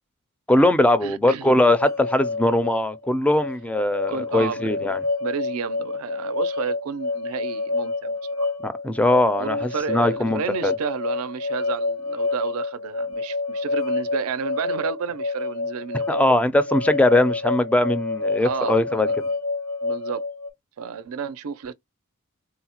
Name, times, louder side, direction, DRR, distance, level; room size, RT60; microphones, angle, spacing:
voice 1, 0.5-5.0 8.6-10.7 16.1-19.1, left 1 dB, 5° left, 0.4 m, -20 dB
voice 2, 1.0-1.5 4.1-4.8 5.2-8.5 9.4-16.2 18.4-19.2 19.8-20.2 20.8-21.7, right 6 dB, 85° right, 0.4 m, -31 dB
sound 1, 1.7-20.5, left 3 dB, 75° left, 0.8 m, -28 dB
3.8 x 2.1 x 2.8 m
head